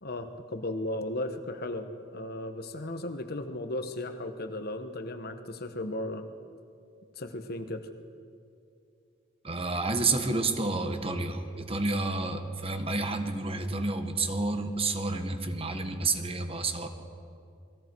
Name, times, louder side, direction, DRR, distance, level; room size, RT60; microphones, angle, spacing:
voice 1, 0.0-6.3 7.2-7.9, left 1 dB, 55° left, 8 dB, 1.3 m, -35 dB
voice 2, 9.4-16.9, right 3 dB, 30° right, 6 dB, 1.5 m, -30 dB
28.5 x 21.0 x 4.7 m, 2.4 s
head